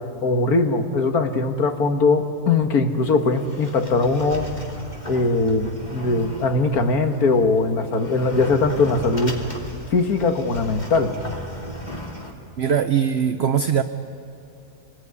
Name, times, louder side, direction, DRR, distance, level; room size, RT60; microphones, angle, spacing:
voice 1, 0.2-4.5 5.1-9.4 9.9-11.1, left 3 dB, 85° left, 6 dB, 2.0 m, -20 dB
Sliding door, 2.9-12.3, equal, 30° left, 2.7 m, -36 dB
voice 2, 12.6-13.8, right 8 dB, 50° right, 8 dB, 1.0 m, -20 dB
27.5 x 20.0 x 9.7 m, 2.8 s
omnidirectional pair, 1.6 m